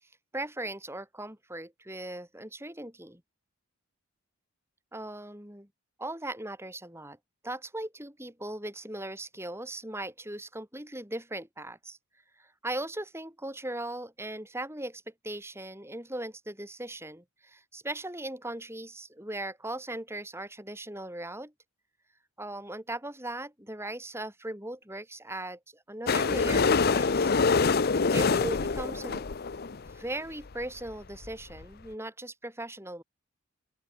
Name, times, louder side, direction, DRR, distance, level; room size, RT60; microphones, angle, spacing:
voice 1, 0.3-3.2 4.9-5.7 6.0-7.2 7.4-12.0 12.4-21.5 22.4-27.3 28.1-29.3 29.6-33.0, right 1 dB, 10° right, 6.4 m, -38 dB
sound 1, 26.1-29.9 30.6-30.7 30.9-31.0 31.2-31.3 31.6-31.7, left 4 dB, 45° left, 0.6 m, -25 dB
open air
head